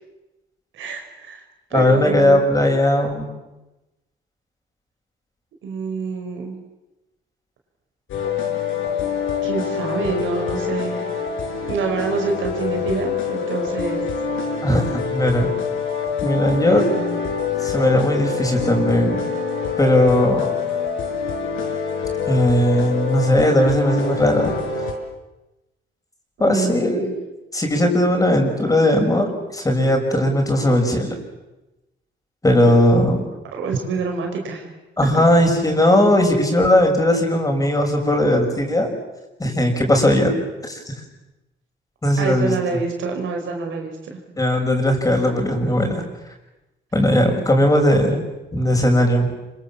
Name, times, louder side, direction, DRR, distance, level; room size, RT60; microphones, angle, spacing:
voice 1, 0.7-1.4 1.7-2.4 5.6-6.6 9.4-11.1 11.7-14.0 16.7-17.2 26.4-27.2 33.5-34.7 42.2-44.2, right 4 dB, 80° right, 2 dB, 5.3 m, -26 dB
voice 2, 1.7-3.3 14.6-15.5 16.2-16.9 17.6-19.2 19.8-20.5 22.3-24.5 26.4-27.1 27.5-31.1 32.4-33.2 35.0-38.9 39.4-40.3 40.6-40.9 42.0-42.5 44.4-46.0 46.9-48.2 48.5-49.3, left 1 dB, 15° left, 2 dB, 6.3 m, -18 dB
sound 1, 8.1-24.9, left 6 dB, 85° left, 5.2 m, -25 dB
26.5 x 25.0 x 7.3 m, 1.0 s
cardioid pair, 90°, 20 cm